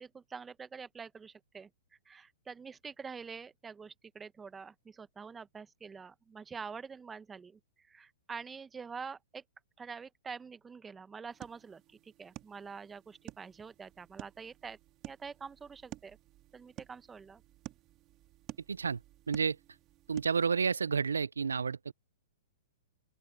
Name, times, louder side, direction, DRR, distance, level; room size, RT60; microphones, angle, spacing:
voice 1, 0.0-1.7 2.0-9.4 9.8-14.8 15.0-16.2 16.5-17.4, right 5 dB, 15° right, 1.1 m, -46 dB
sound 1, 11.3-20.5, right 16 dB, 35° right, 1.6 m, -52 dB
voice 2, 18.7-19.0 19.3-19.6 20.1-21.9, right 5 dB, 90° right, 0.3 m, -30 dB
open air
hypercardioid pair, 125°, 0 cm